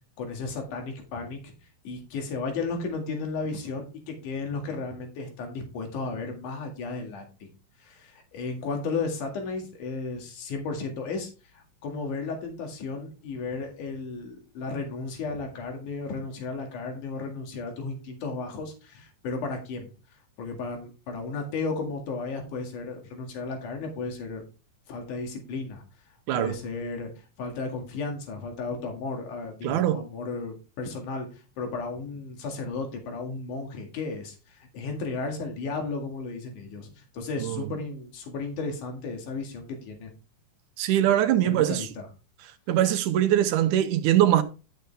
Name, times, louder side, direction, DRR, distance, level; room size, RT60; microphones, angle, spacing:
voice 1, 0.2-1.5 1.9-7.5 7.8-19.9 20.4-24.4 24.9-25.8 26.3-27.1 27.4-40.1 41.4-42.1, left 4 dB, 70° left, 3.5 m, -34 dB
voice 2, 29.6-30.0 37.4-37.6 40.8-41.9 42.7-44.4, right 12 dB, 80° right, 2.1 m, -22 dB
11.5 x 6.7 x 3.4 m
omnidirectional pair, 3.7 m